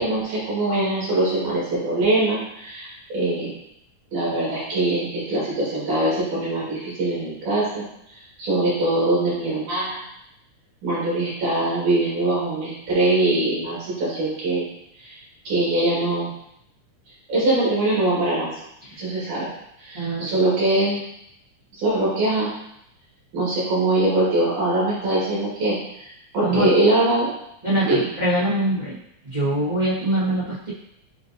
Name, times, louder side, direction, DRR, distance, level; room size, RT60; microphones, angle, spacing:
voice 1, 0.0-3.5 4.1-7.8 8.4-10.0 10.8-14.7 15.0-15.2 15.4-16.3 17.3-18.5 19.0-19.5 19.8-21.0 21.7-22.5 23.3-26.1 26.3-27.3 27.8-28.1, right 2 dB, 75° right, -7 dB, 3.3 m, -22 dB
voice 2, 19.9-20.4 26.4-26.7 27.6-29.0 29.2-30.7, right 1 dB, 50° right, -12 dB, 0.5 m, -23 dB
7.3 x 2.7 x 2.6 m, 0.77 s
omnidirectional pair, 3.5 m